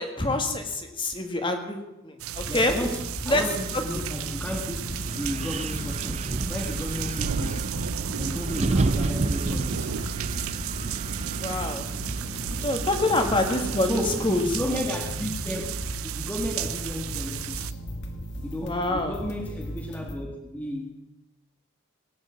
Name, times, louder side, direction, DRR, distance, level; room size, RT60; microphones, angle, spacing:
voice 1, 0.0-2.7 3.3-3.4 3.7-3.8 11.4-11.9 12.6-14.6 18.6-19.2, left 2 dB, 25° left, 5 dB, 1.8 m, -26 dB
sound 1, 2.2-17.7, right 9 dB, 90° right, 0.5 m, -34 dB
sound 2, 2.3-20.2, equal, 55° left, 2.2 m, -37 dB
voice 2, 2.5-7.7 8.2-9.9 13.3-15.7 16.0-17.8 18.4-21.0, left 1 dB, 10° left, 0 dB, 1.5 m, -33 dB
Wind, 4.5-14.5, right 2 dB, 30° right, 0.5 m, -32 dB
18.5 x 9.5 x 7.5 m, 0.99 s
head